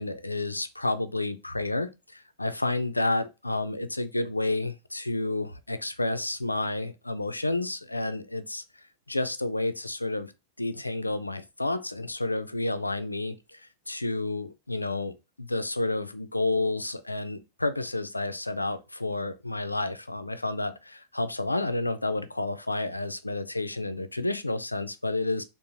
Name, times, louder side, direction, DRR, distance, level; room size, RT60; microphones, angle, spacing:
voice 1, 0.0-8.6 9.1-10.3 10.6-25.4, left 2 dB, 85° left, 0.3 m, -30 dB
3.6 x 2.4 x 2.8 m
figure-of-eight pair, 90°, 0 cm